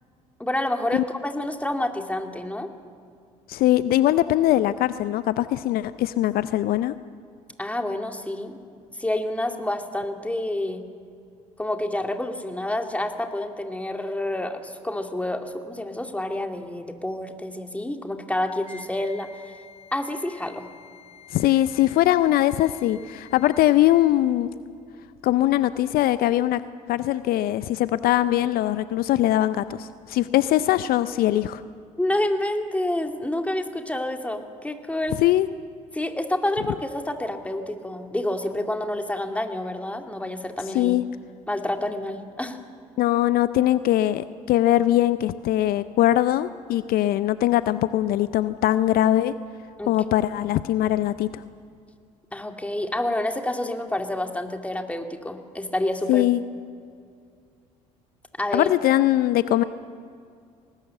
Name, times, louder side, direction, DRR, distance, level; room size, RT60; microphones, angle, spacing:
voice 1, 0.4-2.7 7.6-8.6 9.0-10.8 11.6-19.3 19.9-20.6 32.0-35.2 35.9-40.9 41.5-42.6 49.8-49.9 52.3-56.3 58.4-58.7, left 1 dB, 10° left, 5 dB, 2.3 m, -28 dB
voice 2, 3.5-7.0 21.3-24.5 25.2-26.6 26.9-31.6 35.2-35.5 40.7-41.0 43.0-49.3 49.9-51.4 56.1-56.4 58.5-59.6, left 14 dB, 60° left, 14 dB, 0.6 m, -21 dB
Wind instrument woodwind instrument, 18.6-24.0, left 6 dB, 35° left, 2.0 m, -49 dB
19.5 x 19.0 x 7.8 m, 2.3 s
hypercardioid pair, 60°, 18 cm